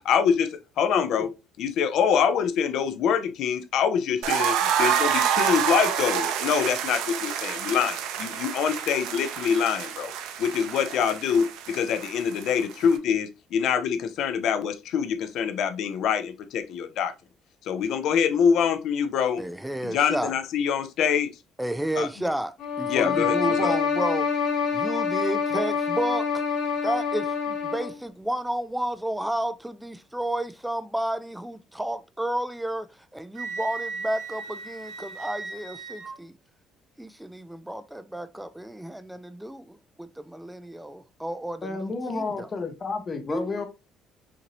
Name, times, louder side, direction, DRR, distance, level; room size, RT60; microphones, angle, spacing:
voice 1, 0.1-1.3 1.6-10.1 10.4-17.1 17.6-19.4 19.8-21.3 22.0-22.1 22.9-23.8, left 7 dB, 60° left, 0.6 m, -25 dB
voice 2, 0.9-1.3 41.6-43.7, left 3 dB, 25° left, 0.8 m, -31 dB
sound 1, 4.2-13.0, right 9 dB, 85° right, 0.6 m, -28 dB
voice 3, 19.4-20.3 21.6-24.3 24.7-26.4 26.8-36.3 37.0-42.5 43.3-43.6, right 1 dB, 5° right, 0.3 m, -31 dB
sound 2, 22.6-28.0, left 6 dB, 75° left, 2.2 m, -26 dB
Wind instrument woodwind instrument, 33.3-36.2, right 4 dB, 60° right, 1.3 m, -36 dB
5.8 x 2.6 x 3.0 m
cardioid pair, 165°, 0 cm